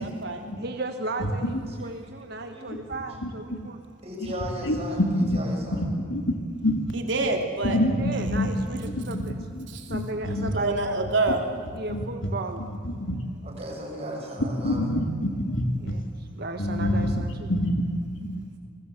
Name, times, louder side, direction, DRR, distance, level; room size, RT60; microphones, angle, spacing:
voice 1, 0.0-0.4 6.9-7.8 9.7-9.9 10.5-11.4, right 3 dB, 70° right, 3 dB, 3.2 m, -26 dB
voice 2, 0.6-3.8 8.0-9.3 9.9-11.0 11.7-12.6 15.8-16.0 16.3-17.5, right 2 dB, 55° right, 5 dB, 1.4 m, -35 dB
voice 3, 1.2-1.5 2.7-2.8 3.2-3.7 4.6-4.8 5.2-5.4 5.7-6.3 6.6-6.9 7.6-8.5 8.8-9.2 9.5-10.5 11.9-12.0 12.6-13.1 14.6-15.6 16.6-17.2 17.5-18.4, left 1 dB, 90° left, 4 dB, 3.4 m, -27 dB
voice 4, 4.0-5.8 12.4-12.6 13.4-14.9 16.9-17.0, equal, 35° right, -1 dB, 6.8 m, -36 dB
29.0 x 20.5 x 8.3 m, 2.3 s
head